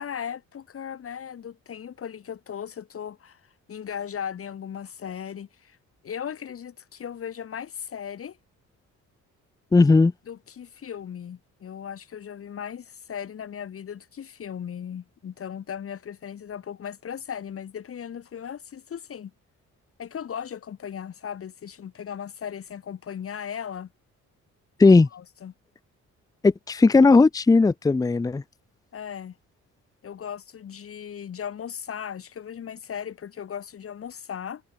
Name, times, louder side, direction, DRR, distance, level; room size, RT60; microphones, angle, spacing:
voice 1, 0.0-3.4 3.7-5.8 6.0-8.4 10.3-19.3 20.0-23.9 24.9-25.5 28.9-29.3 30.0-34.6, left 8 dB, 50° left, 1.4 m, -37 dB
voice 2, 9.7-10.1 24.8-25.1 26.4-28.4, left 3 dB, 10° left, 0.5 m, -17 dB
cardioid pair, 90°, 30 cm